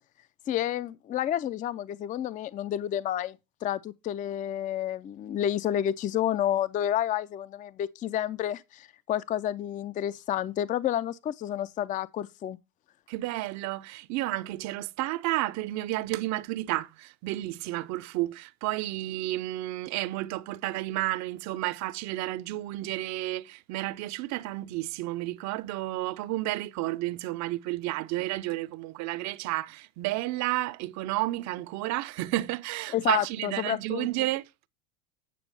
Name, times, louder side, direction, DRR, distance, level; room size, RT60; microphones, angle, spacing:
voice 1, 0.5-12.6 32.9-34.1, left 11 dB, 20° left, 0.5 m, -30 dB
voice 2, 13.1-34.7, right 17 dB, 40° right, 0.7 m, -31 dB
9.2 x 5.9 x 5.4 m
hypercardioid pair, 105°, 44 cm